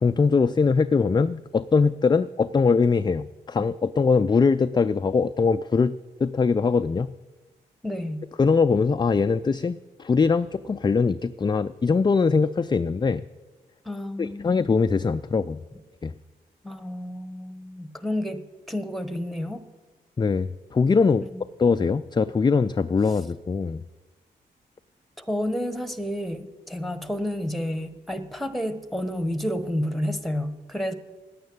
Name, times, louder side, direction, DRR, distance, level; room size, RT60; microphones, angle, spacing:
voice 1, 0.0-7.1 8.4-13.2 14.2-15.6 16.0-16.1 20.2-21.3 21.6-23.8, left 4 dB, 20° left, 11 dB, 0.4 m, -22 dB
voice 2, 7.8-8.2 13.8-14.6 16.6-19.6 25.2-30.9, equal, ahead, 12 dB, 1.2 m, -30 dB
9.3 x 9.1 x 8.7 m, 1.3 s
supercardioid pair, 40°, 20 cm